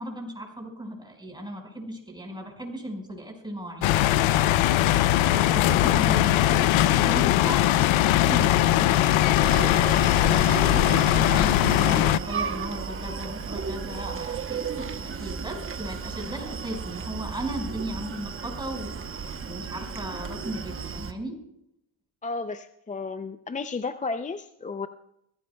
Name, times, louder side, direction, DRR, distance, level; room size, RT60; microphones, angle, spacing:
voice 1, 0.0-3.9 5.3-9.2 10.2-19.0 19.4-21.4, right 1 dB, 10° right, 1 dB, 4.8 m, -36 dB
sound 1, 3.8-12.2, left 13 dB, 75° left, 0.7 m, -20 dB
Screaming, 9.4-21.1, right 5 dB, 25° right, 0.9 m, -34 dB
voice 2, 22.2-24.9, left 4 dB, 15° left, 9 dB, 0.4 m, -33 dB
24.0 x 15.5 x 2.3 m, 0.79 s
cardioid pair, 115°, 48 cm